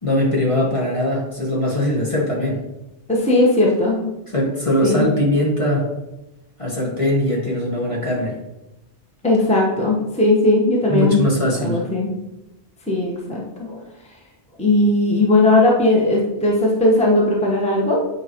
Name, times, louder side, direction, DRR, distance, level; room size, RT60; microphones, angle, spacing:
voice 1, 0.0-2.6 4.3-5.9 6.6-8.4 10.9-11.9, left 1 dB, 30° left, -3 dB, 1.5 m, -21 dB
voice 2, 3.1-4.1 4.8-5.1 9.2-11.2 11.6-12.1 12.9-13.8 14.6-18.1, left 2 dB, 5° left, -3 dB, 1.2 m, -17 dB
8.8 x 4.8 x 3.0 m, 0.99 s
omnidirectional pair, 1.1 m